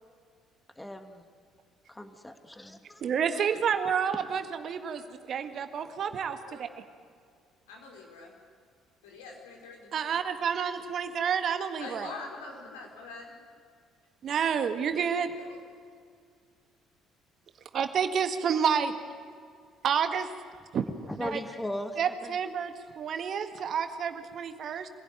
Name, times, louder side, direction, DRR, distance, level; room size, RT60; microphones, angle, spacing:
voice 1, 0.8-1.3 1.9-3.0 21.1-22.4, left 1 dB, 10° left, 7 dB, 2.4 m, -38 dB
voice 2, 3.0-5.0 5.3-6.7 9.9-12.1 14.2-15.3 17.7-18.9 19.8-20.3 20.7-20.8 21.2-21.4 22.0-24.9, right 7 dB, 55° right, 8 dB, 1.8 m, -29 dB
voice 3, 7.7-8.3 9.0-10.1 11.8-13.4 15.4-15.6, left 3 dB, 80° left, 0 dB, 4.9 m, -44 dB
25.5 x 16.5 x 9.2 m, 2.2 s
hypercardioid pair, 55°, 0 cm